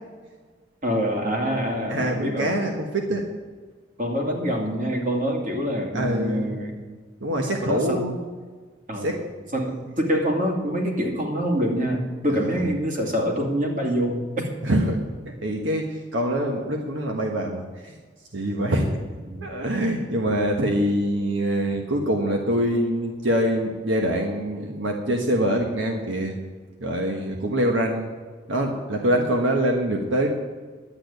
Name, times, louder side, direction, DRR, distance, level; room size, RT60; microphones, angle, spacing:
voice 1, 0.8-2.6 4.0-6.8 7.6-8.1 8.9-9.2 9.5-14.5 19.2-19.5, equal, 45° right, 1 dB, 2.4 m, -25 dB
voice 2, 1.9-3.3 5.9-6.6 7.2-8.2 9.0-9.1 12.4-12.5 14.6-15.0 15.4-17.9 18.3-18.9 19.4-26.3 26.8-28.1 28.5-30.3, right 1 dB, 85° right, 2 dB, 1.4 m, -24 dB
11.5 x 8.7 x 8.2 m, 1.5 s
head